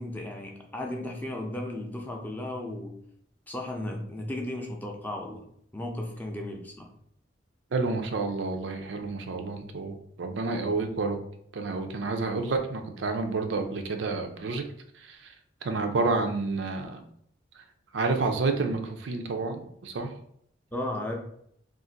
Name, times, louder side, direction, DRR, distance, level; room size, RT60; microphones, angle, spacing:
voice 1, 0.0-2.9 3.5-5.4 5.7-6.9 20.7-21.1, left 1 dB, 10° left, 1 dB, 0.4 m, -35 dB
voice 2, 7.7-11.2 11.5-14.6 14.9-15.3 15.6-17.0 17.9-20.1, right 3 dB, 75° right, 5 dB, 0.5 m, -29 dB
2.5 x 2.5 x 3.9 m, 0.68 s
head